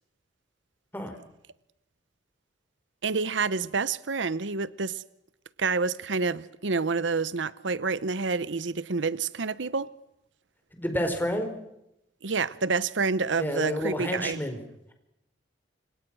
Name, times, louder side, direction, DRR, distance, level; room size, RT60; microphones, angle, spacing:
voice 1, 3.0-5.0 5.6-9.9 12.2-14.4, right 4 dB, 80° right, 0.9 m, -28 dB
voice 2, 10.7-11.5 13.4-14.6, equal, 10° left, 4.8 m, -29 dB
28.5 x 27.0 x 6.3 m
head